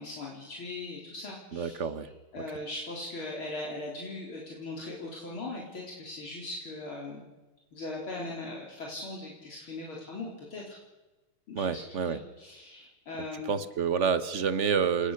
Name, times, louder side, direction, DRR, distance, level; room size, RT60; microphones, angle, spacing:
voice 1, 0.0-1.7 2.3-7.2 7.7-10.8 11.5-13.5, left 2 dB, 70° left, -3 dB, 4.8 m, -39 dB
voice 2, 1.5-2.1 11.5-12.2 13.4-15.1, right 6 dB, 40° right, 12 dB, 1.3 m, -28 dB
29.5 x 19.5 x 6.7 m, 1.1 s
omnidirectional pair, 2.4 m